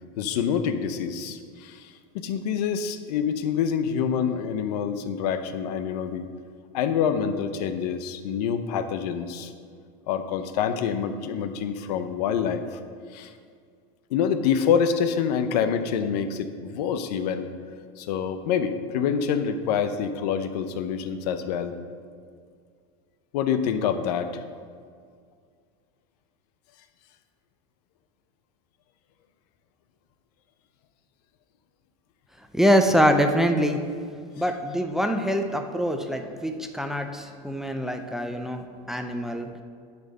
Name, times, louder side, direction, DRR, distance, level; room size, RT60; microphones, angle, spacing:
voice 1, 0.2-6.3 6.7-9.5 10.1-12.8 13.1-13.3 14.1-17.5 18.0-21.8 23.3-24.4, left 7 dB, 85° left, 9 dB, 0.7 m, -26 dB
voice 2, 32.5-33.8 34.4-39.5, equal, ahead, 5 dB, 0.5 m, -24 dB
9.4 x 4.4 x 6.5 m, 2.1 s
supercardioid pair, 125°, 20 cm